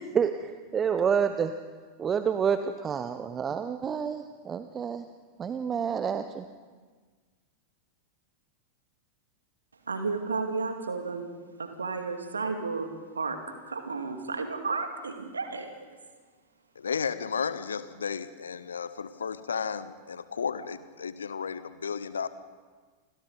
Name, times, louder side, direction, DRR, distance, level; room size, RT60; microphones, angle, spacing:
voice 1, 0.0-1.5 2.0-5.0 5.4-6.4, right 7 dB, 20° right, 10 dB, 0.9 m, -28 dB
voice 2, 9.9-11.3 11.6-13.4 13.7-15.8, right 4 dB, 75° right, 6 dB, 2.4 m, -32 dB
voice 3, 16.8-22.3, left 6 dB, 70° left, 14 dB, 1.1 m, -33 dB
29.5 x 25.5 x 4.0 m, 1.5 s
figure-of-eight pair, 90°, 0 cm